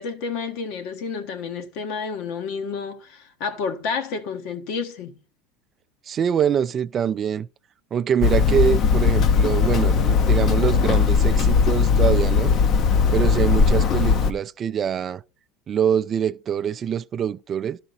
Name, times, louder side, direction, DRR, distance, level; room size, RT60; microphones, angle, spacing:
voice 1, 0.0-5.2, left 5 dB, 65° left, 1.4 m, -30 dB
voice 2, 6.1-7.5 7.9-12.6 13.1-15.2 15.7-17.8, right 8 dB, 35° right, 0.4 m, -24 dB
Hammer, 8.2-14.3, left 5 dB, 45° left, 0.8 m, -18 dB
12.5 x 5.0 x 4.2 m
supercardioid pair, 110°, 0 cm